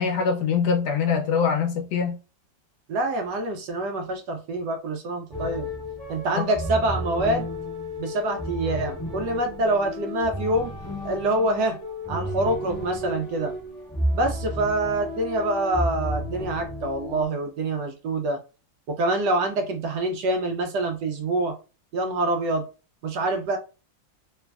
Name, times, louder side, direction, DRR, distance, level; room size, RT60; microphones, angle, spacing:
voice 1, 0.0-2.2 6.4-6.5, left 6 dB, 70° left, 1.1 m, -23 dB
voice 2, 2.9-5.7 6.1-7.5 8.0-10.7 11.0-11.8 12.1-13.5 14.1-18.4 18.9-21.6 21.9-22.7 23.0-23.6, right 2 dB, 70° right, 1.1 m, -26 dB
sound 1, 5.3-17.2, equal, ahead, 1.4 m, -32 dB
3.2 x 3.2 x 2.2 m
omnidirectional pair, 2.0 m